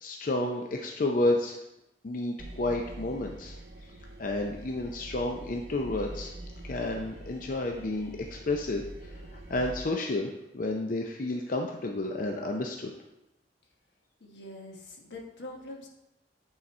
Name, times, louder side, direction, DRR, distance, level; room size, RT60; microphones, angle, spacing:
voice 1, 0.0-1.6 2.0-3.6 4.2-6.3 6.6-12.9, left 2 dB, 50° left, 2 dB, 0.5 m, -31 dB
sound 1, 2.4-9.8, right 1 dB, 70° right, 0.9 m, -44 dB
voice 2, 14.2-15.9, left 2 dB, 85° left, 1 dB, 1.3 m, -44 dB
8.6 x 4.0 x 4.3 m, 0.90 s
head